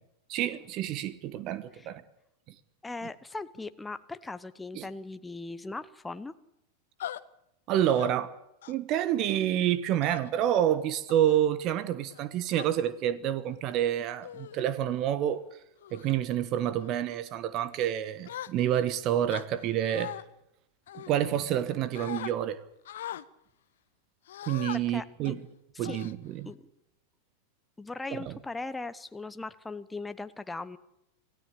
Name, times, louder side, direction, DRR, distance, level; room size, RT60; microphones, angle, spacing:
voice 1, 0.3-2.0 4.7-4.9 7.7-8.3 8.7-15.4 15.9-20.1 20.9-22.6 24.5-25.4 25.8-26.5, right 11 dB, 40° right, 1.3 m, -28 dB
voice 2, 2.8-6.3 24.7-25.3 25.7-26.0 26.4-26.6 27.8-30.8, left 3 dB, 10° left, 1.0 m, -39 dB
sound 1, 7.0-7.2 7.8-8.1 8.6-8.9 10.0-10.5 11.1-11.4 12.1-12.7 13.5-13.7 14.2-14.6 15.1-15.3 15.8-16.1 16.7-16.9 18.3-18.9 19.3-20.2 20.9-21.6 21.9-22.3 22.9-23.3 24.3-24.8 25.3-25.4 25.8-26.5, left 12 dB, 60° left, 1.0 m, -41 dB
27.5 x 17.0 x 8.5 m
figure-of-eight pair, 90°, 0 cm